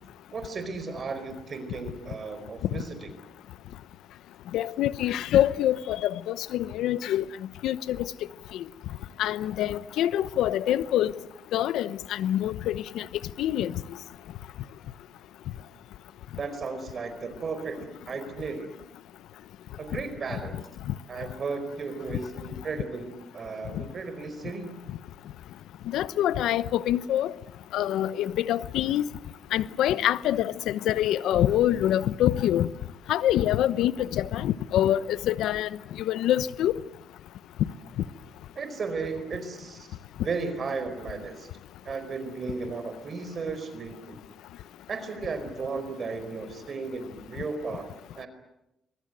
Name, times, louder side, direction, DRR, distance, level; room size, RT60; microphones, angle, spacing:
voice 1, 0.3-3.1 16.4-18.7 19.8-20.6 21.1-24.9 38.5-41.5 41.8-44.2 44.9-48.3, right 4 dB, 45° right, 4.8 m, -35 dB
voice 2, 4.5-7.2 7.6-8.1 8.5-8.6 9.2-11.1 11.5-13.1 13.4-13.7 20.3-20.4 23.7-23.8 25.9-27.3 27.7-29.1 29.5-32.7 33.1-35.7 36.0-36.8, left 12 dB, 85° left, 0.9 m, -25 dB
24.0 x 23.0 x 9.2 m
cardioid pair, 90°, 0 cm